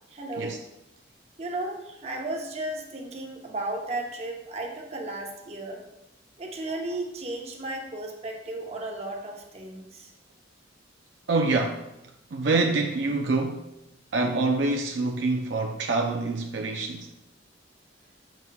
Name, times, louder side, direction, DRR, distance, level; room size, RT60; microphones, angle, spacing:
voice 1, 0.1-0.6 1.4-5.8 6.4-10.1, right 2 dB, 35° right, 0.8 m, -34 dB
voice 2, 11.3-11.8 12.3-13.7 14.1-17.1, right 3 dB, 70° right, 0.5 m, -26 dB
6.9 x 5.9 x 2.3 m
head